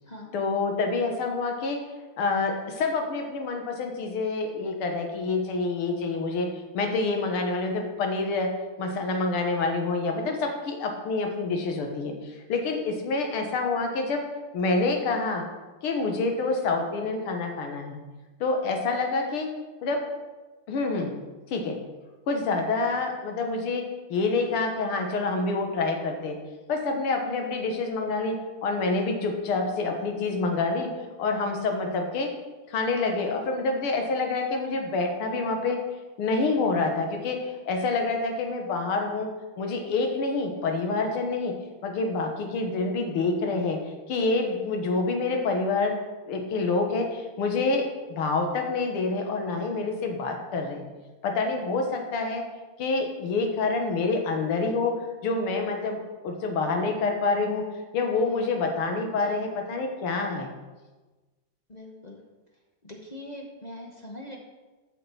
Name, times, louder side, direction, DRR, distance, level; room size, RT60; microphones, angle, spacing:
voice 1, 0.3-1.8 2.2-6.5 6.7-8.5 8.8-14.2 14.5-15.4 15.8-18.0 18.4-19.5 19.8-20.0 20.7-21.1 21.5-21.8 22.3-23.8 24.1-26.4 26.7-30.9 31.2-32.3 32.7-35.8 36.2-39.3 39.6-41.5 41.8-43.8 44.1-46.0 46.3-50.8 51.2-52.4 52.8-55.0 55.2-56.0 56.2-57.7 57.9-60.5, left 3 dB, 85° left, 3 dB, 2.1 m, -27 dB
voice 2, 61.7-62.2 62.8-64.4, left 1 dB, 40° left, 0 dB, 0.6 m, -42 dB
7.8 x 5.8 x 6.8 m, 1.2 s
omnidirectional pair, 2.3 m